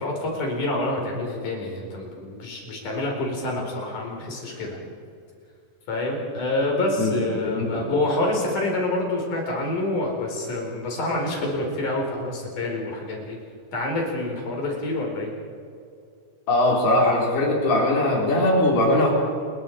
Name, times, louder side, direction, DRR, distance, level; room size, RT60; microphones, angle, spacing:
voice 1, 0.0-4.8 5.9-13.4 13.7-15.3, left 2 dB, 55° left, 0 dB, 5.9 m, -27 dB
voice 2, 7.0-7.9 16.5-19.1, left 1 dB, 80° left, -2 dB, 6.9 m, -21 dB
29.5 x 22.0 x 4.9 m, 2.3 s
omnidirectional pair, 4.4 m